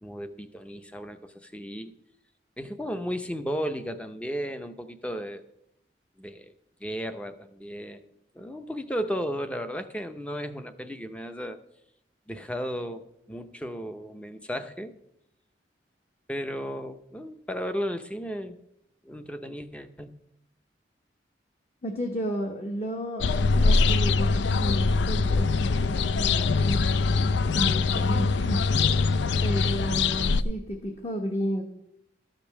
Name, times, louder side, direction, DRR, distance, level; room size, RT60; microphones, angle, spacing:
voice 1, 0.0-1.9 2.6-5.4 6.2-6.5 6.8-11.6 12.3-15.0 16.3-18.6 19.0-20.2, equal, 5° left, 9 dB, 0.6 m, -34 dB
voice 2, 21.8-29.0 29.4-31.6, equal, 35° left, 2 dB, 1.1 m, -33 dB
sound 1, 23.2-30.4, left 4 dB, 75° left, 0.4 m, -23 dB
13.0 x 5.2 x 7.2 m, 0.79 s
head